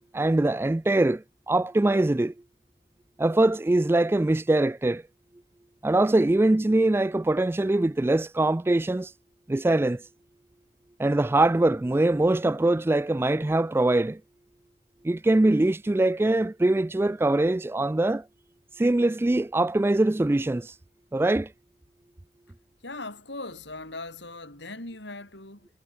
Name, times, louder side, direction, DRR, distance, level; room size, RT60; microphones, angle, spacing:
voice 1, 0.0-2.3 3.2-5.0 5.8-9.1 9.5-10.0 11.0-14.2 15.0-18.2 18.8-20.7 21.1-21.5, right 2 dB, 15° right, 0.3 m, -23 dB
voice 2, 22.8-25.7, left 2 dB, 70° left, 7.2 m, -39 dB
head